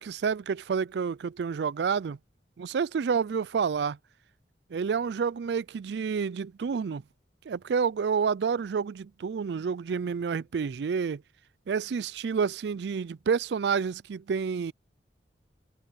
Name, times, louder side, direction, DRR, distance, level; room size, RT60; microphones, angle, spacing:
voice 1, 0.0-2.2 2.6-4.0 4.7-7.0 7.5-11.2 11.7-14.7, right 6 dB, 70° right, 0.4 m, -29 dB
head